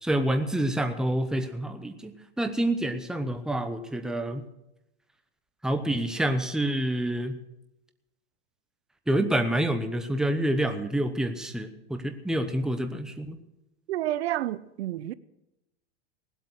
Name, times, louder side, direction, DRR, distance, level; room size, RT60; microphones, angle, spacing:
voice 1, 0.0-4.4 5.6-7.4 9.1-13.4, right 1 dB, ahead, 0.9 m, -27 dB
voice 2, 13.9-15.1, right 13 dB, 75° right, 0.7 m, -30 dB
19.0 x 8.2 x 6.3 m
supercardioid pair, 135°, 32 cm